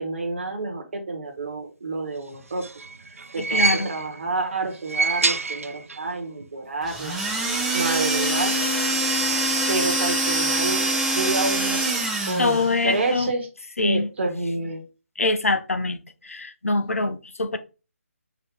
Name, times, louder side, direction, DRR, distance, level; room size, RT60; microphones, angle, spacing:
voice 1, 0.0-2.7 3.1-7.2 7.7-8.6 9.7-11.8 12.3-13.5 13.8-14.9, right 3 dB, 50° right, 1.3 m, -29 dB
sound 1, 2.3-4.3 4.7-6.2 6.4-6.5 7.6-7.7, right 3 dB, 65° right, 0.5 m, -26 dB
voice 2, 3.5-3.9 12.4-13.3 13.8-14.1 15.2-16.0 16.2-17.6, left 3 dB, 65° left, 0.7 m, -24 dB
sound 2, 6.8-12.7, right 1 dB, 5° right, 0.6 m, -24 dB
4.8 x 3.0 x 3.7 m
figure-of-eight pair, 145°, 8 cm